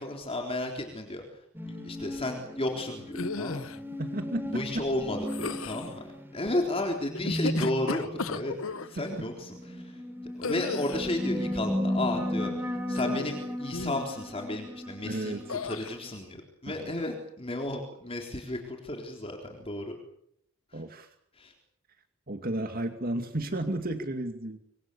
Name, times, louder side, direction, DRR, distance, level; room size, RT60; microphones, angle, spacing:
voice 1, 0.0-3.8 4.5-6.0 6.3-8.6 8.9-10.0 10.3-20.0 20.7-20.8 21.3-21.5, left 1 dB, 30° left, 2 dB, 3.8 m, -33 dB
sound 1, 1.5-16.1, left 1 dB, 10° right, 3.2 m, -35 dB
sound 2, 3.1-3.8 5.3-5.9 7.1-8.9 10.4-11.1 12.9-13.4 13.7-14.1 15.5-15.9, left 4 dB, 80° left, 1.1 m, -35 dB
voice 2, 4.0-4.8 9.0-9.1 15.1-15.4 16.7-16.9 20.7-21.1 22.3-24.6, right 1 dB, 45° right, 6 dB, 2.3 m, -33 dB
26.5 x 25.5 x 7.0 m, 0.71 s
head